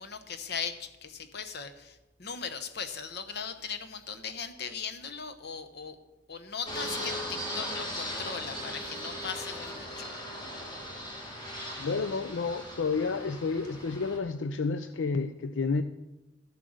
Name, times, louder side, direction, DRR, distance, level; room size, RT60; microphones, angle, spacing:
voice 1, 0.0-6.0 6.3-10.1, left 6 dB, 60° left, 1.0 m, -38 dB
Fixed-wing aircraft airplane, 6.7-14.2, equal, 25° left, 2.2 m, -38 dB
voice 2, 11.8-15.8, left 4 dB, 80° left, 0.5 m, -30 dB
12.5 x 7.7 x 6.5 m
head